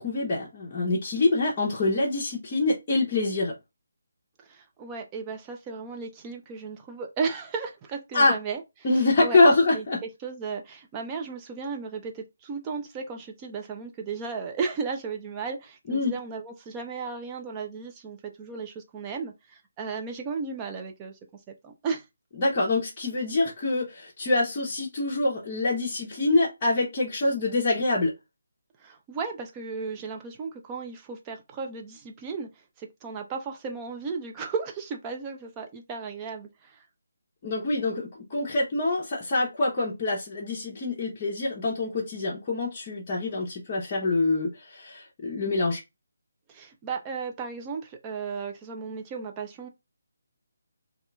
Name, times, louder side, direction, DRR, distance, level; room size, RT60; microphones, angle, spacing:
voice 1, 0.0-3.5 8.1-8.3 8.8-10.0 15.9-16.1 22.4-28.1 37.4-45.8, left 2 dB, 30° left, 0.7 m, -25 dB
voice 2, 4.5-8.6 9.2-9.4 9.7-9.8 10.2-21.1 21.5-22.0 28.8-32.5 32.8-36.8 46.5-49.7, right 5 dB, 20° right, 0.5 m, -35 dB
2.8 x 2.3 x 2.2 m
figure-of-eight pair, 155°, 0 cm